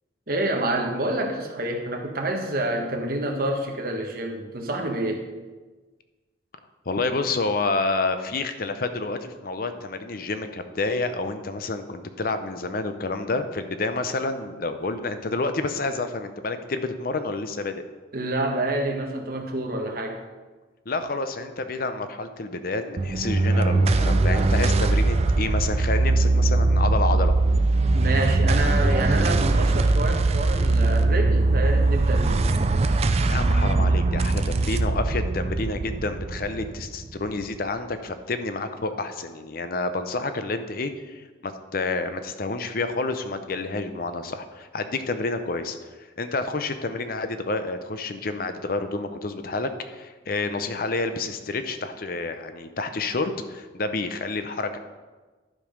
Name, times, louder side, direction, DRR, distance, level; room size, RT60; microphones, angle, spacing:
voice 1, 0.3-5.2 18.1-20.2 27.9-32.6, right 1 dB, 55° right, 2 dB, 1.3 m, -28 dB
voice 2, 6.9-17.8 20.9-27.3 33.2-45.9 46.2-54.8, left 3 dB, 55° left, 9 dB, 0.6 m, -29 dB
sound 1, 23.0-37.6, right 2 dB, 35° right, 0.4 m, -21 dB
11.5 x 5.3 x 5.1 m, 1.3 s
head